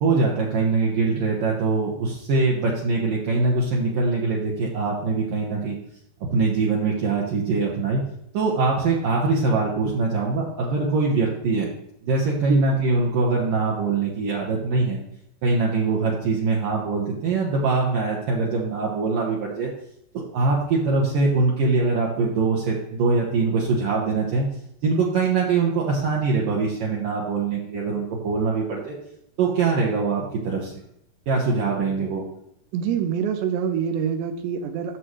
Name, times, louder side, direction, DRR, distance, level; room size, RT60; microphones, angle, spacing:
voice 1, 0.0-5.8 6.2-8.0 8.3-11.7 12.0-15.0 15.4-19.7 20.3-24.5 24.8-28.9 29.4-30.7 31.3-32.3, right 3 dB, 65° right, -3 dB, 2.4 m, -23 dB
voice 2, 32.7-35.0, right 7 dB, 85° right, 8 dB, 2.8 m, -25 dB
12.5 x 7.1 x 3.2 m, 0.74 s
omnidirectional pair, 5.0 m